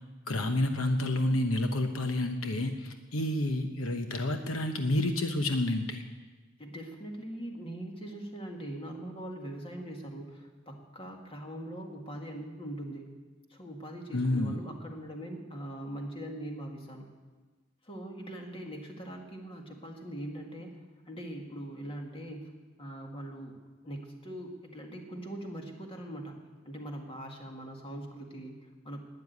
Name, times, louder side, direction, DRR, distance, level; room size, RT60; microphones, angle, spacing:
voice 1, 0.3-6.0 14.1-14.6, left 1 dB, 70° left, 6 dB, 1.0 m, -29 dB
voice 2, 6.6-13.1 13.5-17.1 17.8-20.8 21.1-22.5 22.8-23.6 23.8-26.4 26.6-29.0, right 1 dB, 25° left, 2 dB, 2.0 m, -41 dB
12.5 x 9.8 x 9.6 m, 1.3 s
head